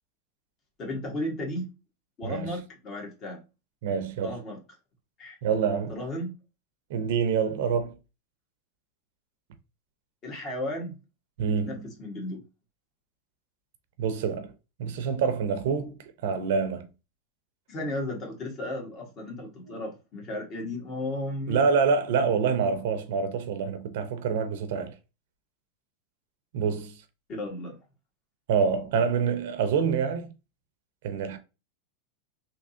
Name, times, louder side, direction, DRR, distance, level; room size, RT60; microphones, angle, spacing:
voice 1, 0.8-1.7 2.2-3.4 4.2-4.6 5.2-5.4 5.9-6.3 10.2-11.0 11.4-12.4 17.7-21.6 27.3-27.8, left 1 dB, 40° left, 1.6 m, -34 dB
voice 2, 2.2-2.6 3.8-4.4 5.4-6.0 6.9-8.0 11.4-11.9 14.0-14.5 14.8-16.9 19.7-19.8 21.5-24.9 26.5-27.0 28.5-30.3 31.0-31.4, right 6 dB, 70° right, 0.6 m, -26 dB
3.4 x 2.9 x 2.7 m
supercardioid pair, 120°, 0 cm